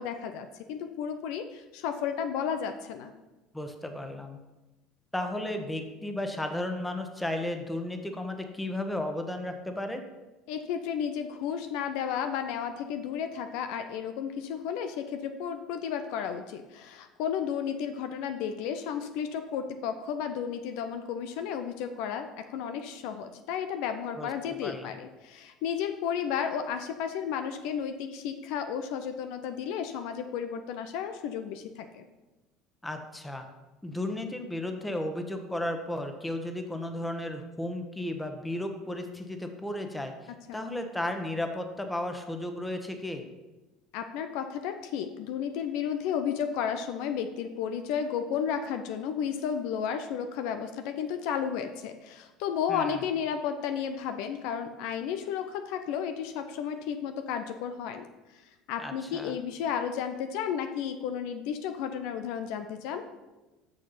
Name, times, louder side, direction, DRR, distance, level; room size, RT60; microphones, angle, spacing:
voice 1, 0.0-3.1 10.5-32.0 40.5-40.6 43.9-58.1 58.4-63.0, left 8 dB, 65° left, 8 dB, 0.5 m, -33 dB
voice 2, 3.5-4.4 5.1-10.0 24.2-24.9 32.8-33.5 33.8-43.3 52.7-53.0 58.8-59.3, left 1 dB, 10° left, 6 dB, 1.2 m, -34 dB
6.5 x 6.4 x 5.7 m, 1.1 s
hypercardioid pair, 70°, 0 cm